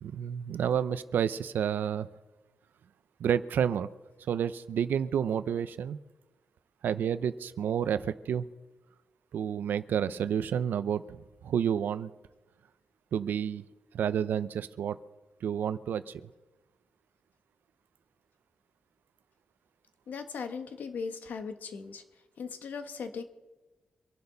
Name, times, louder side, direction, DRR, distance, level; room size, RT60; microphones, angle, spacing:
voice 1, 0.0-2.1 3.2-3.9 4.3-6.0 6.8-8.5 9.3-12.1 13.1-13.6 13.9-15.0 15.4-16.2, right 8 dB, 85° right, 14 dB, 0.7 m, -30 dB
voice 2, 20.1-22.0 22.4-23.2, left 5 dB, 65° left, 7 dB, 1.6 m, -38 dB
25.5 x 11.5 x 4.1 m, 1.1 s
wide cardioid pair, 170°, 3 cm